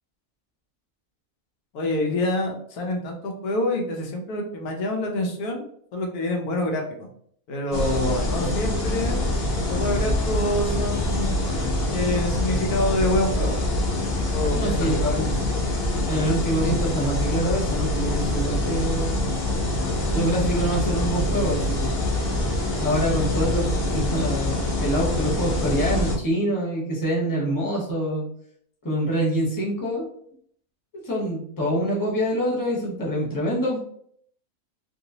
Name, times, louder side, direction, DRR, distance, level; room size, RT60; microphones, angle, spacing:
voice 1, 1.7-5.6 5.9-7.1 7.5-9.3 9.7-11.4 11.9-13.6 14.3-15.1, left 1 dB, 90° left, 2 dB, 1.2 m, -26 dB
sound 1, 7.7-26.2, left 1 dB, 50° left, 0.9 m, -25 dB
voice 2, 14.5-15.5 16.1-19.2 20.1-22.1 22.8-28.2 28.8-30.1 31.0-33.8, equal, 15° left, -3 dB, 0.8 m, -25 dB
3.0 x 2.9 x 2.7 m, 0.64 s
omnidirectional pair, 1.6 m